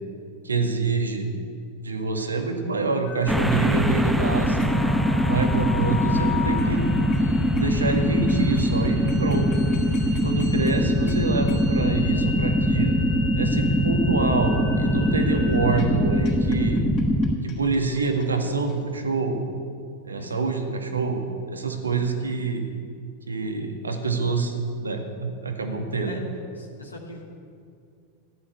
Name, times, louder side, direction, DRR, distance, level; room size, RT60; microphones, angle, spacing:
voice 1, 0.4-1.3 1.8-4.7 5.3-6.8 7.5-9.5 10.2-13.0 13.4-16.8 17.4-19.5 20.0-21.3 21.5-22.7 23.3-24.5 24.8-26.2, right 4 dB, 75° right, 4 dB, 2.0 m, -26 dB
sound 1, 3.1-19.0, left 6 dB, 40° left, 3.7 m, -37 dB
sound 2, 3.3-17.4, equal, ahead, 0.9 m, -22 dB
voice 2, 20.2-20.5 26.0-26.2 26.6-27.2, left 1 dB, 80° left, -1 dB, 2.8 m, -42 dB
16.0 x 11.5 x 8.0 m, 2.4 s
figure-of-eight pair, 90°, 0 cm